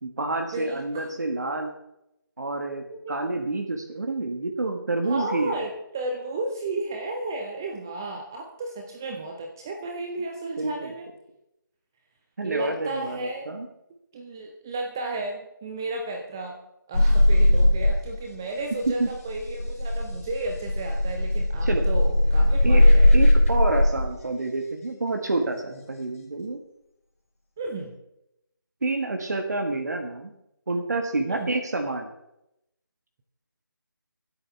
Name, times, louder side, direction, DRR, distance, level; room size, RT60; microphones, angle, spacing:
voice 1, 0.0-1.7 2.4-5.6 10.6-10.9 12.4-13.7 19.0-19.1 21.6-21.9 22.6-22.8 23.1-26.6 28.8-30.3 30.7-32.1, right 2 dB, 50° right, 4 dB, 1.6 m, -28 dB
voice 2, 0.5-1.1 2.7-3.1 5.0-11.1 12.4-13.6 14.1-16.6 16.9-23.2 27.6-27.9 31.3-31.5, right 2 dB, 10° right, 2 dB, 0.5 m, -33 dB
sound 1, 16.9-18.4 18.6-24.1 25.8-26.2, left 1 dB, 40° left, 3.1 m, -19 dB
24.0 x 8.3 x 3.4 m, 0.84 s
figure-of-eight pair, 160°, 12 cm